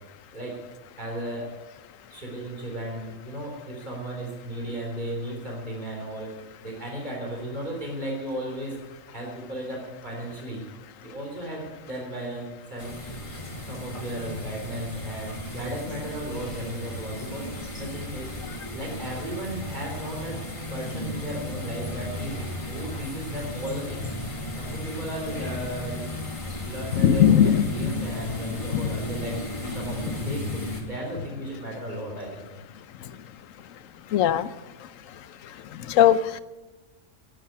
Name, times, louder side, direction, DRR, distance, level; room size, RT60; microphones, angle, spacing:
voice 1, 1.0-1.5 2.1-10.6 11.0-13.0 13.7-18.3 18.7-20.4 20.7-24.0 24.6-26.0 26.6-32.6, right 1 dB, 35° right, -1 dB, 3.7 m, -35 dB
sound 1, 12.8-30.8, left 1 dB, 25° left, 2.1 m, -35 dB
voice 2, 26.9-28.0 28.7-28.9 30.1-30.4 34.1-34.5 35.9-36.2, left 10 dB, 90° left, 15 dB, 1.1 m, -20 dB
11.5 x 10.5 x 9.5 m, 1.1 s
omnidirectional pair, 1.3 m